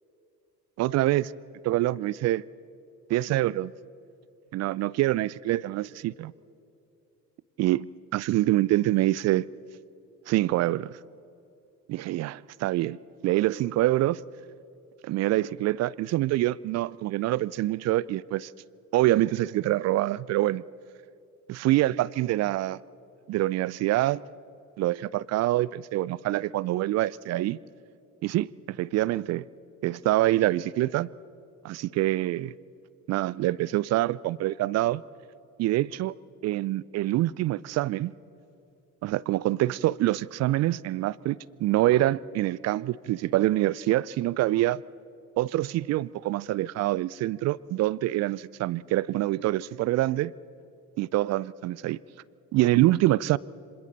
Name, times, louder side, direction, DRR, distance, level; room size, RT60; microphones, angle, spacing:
voice 1, 0.8-1.3 1.7-2.4 3.1-3.7 4.5-6.3 7.6-9.5 10.3-11.0 11.9-13.0 13.2-14.2 15.0-18.5 18.9-20.6 21.5-22.8 23.3-24.2 24.8-27.6 28.2-29.5 29.8-31.1 31.6-32.5 33.1-35.0 35.6-36.1 36.4-38.1 39.0-44.8 45.4-50.3 51.0-52.0 52.5-53.4, right 16 dB, 35° right, 0.4 m, -25 dB
26.5 x 26.0 x 4.1 m
figure-of-eight pair, 60°, 48 cm